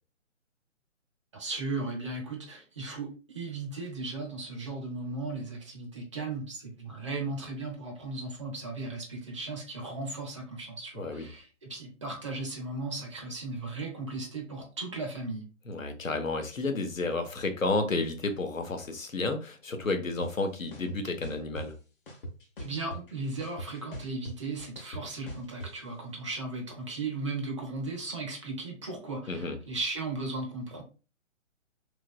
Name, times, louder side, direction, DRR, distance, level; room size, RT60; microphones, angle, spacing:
voice 1, 1.3-15.5 22.6-30.8, right 3 dB, 25° right, 0.5 m, -36 dB
voice 2, 11.0-11.3 15.7-21.8 29.3-29.6, left 3 dB, 85° left, 0.8 m, -31 dB
sound 1, 20.2-20.3 20.7-21.7 22.1-23.1 23.4-25.7, equal, 45° left, 0.8 m, -41 dB
3.0 x 2.5 x 2.2 m
figure-of-eight pair, 135°, 39 cm